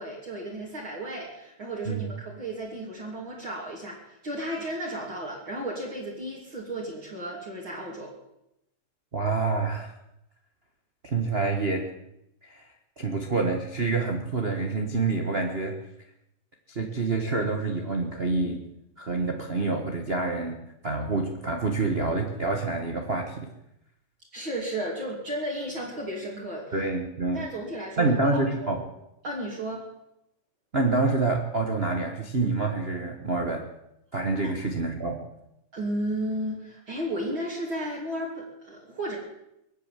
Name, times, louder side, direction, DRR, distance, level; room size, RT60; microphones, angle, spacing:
voice 1, 0.0-8.1 24.3-26.8 27.3-28.8 29.2-29.9 34.4-34.5 35.7-39.2, right 1 dB, 40° right, -4 dB, 3.6 m, -34 dB
voice 2, 9.1-9.9 11.0-11.8 12.4-12.6 13.0-15.7 16.7-18.7 19.0-20.6 20.8-23.5 26.7-27.4 28.0-28.8 30.7-33.6 34.1-35.2, right 3 dB, 80° right, 2 dB, 0.5 m, -27 dB
22.5 x 8.6 x 7.5 m, 0.83 s
omnidirectional pair, 3.7 m